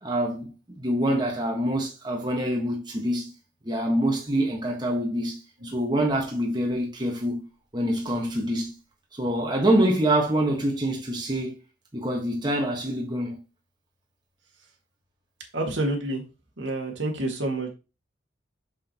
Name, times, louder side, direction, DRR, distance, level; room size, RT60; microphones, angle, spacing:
voice 1, 0.0-3.3 3.6-7.4 7.7-8.7 9.2-11.6 11.9-13.4, right 1 dB, 25° right, 1.4 m, -25 dB
voice 2, 15.5-16.2 16.6-17.7, right 1 dB, 80° right, 2.0 m, -28 dB
6.3 x 5.7 x 3.0 m
head